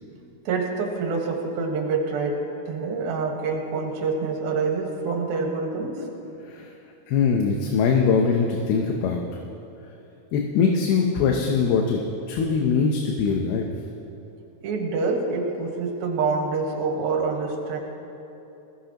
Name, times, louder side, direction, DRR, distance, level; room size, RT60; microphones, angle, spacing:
voice 1, 0.5-6.1 14.6-17.8, right 4 dB, 75° right, 1 dB, 3.2 m, -26 dB
voice 2, 7.1-9.2 10.3-12.0 12.3-13.7, left 5 dB, 85° left, 1 dB, 2.8 m, -22 dB
20.5 x 16.5 x 3.0 m, 2.9 s
omnidirectional pair, 4.4 m